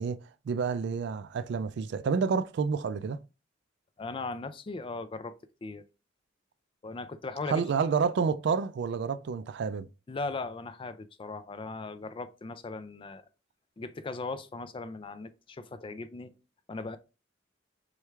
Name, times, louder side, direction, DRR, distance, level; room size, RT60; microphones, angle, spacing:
voice 1, 0.0-3.2 7.5-9.9, right 5 dB, 65° right, 0.3 m, -29 dB
voice 2, 4.0-5.8 6.8-7.6 10.1-13.3 13.8-16.4 16.7-17.0, left 3 dB, 30° left, 0.4 m, -38 dB
4.5 x 2.3 x 3.2 m
head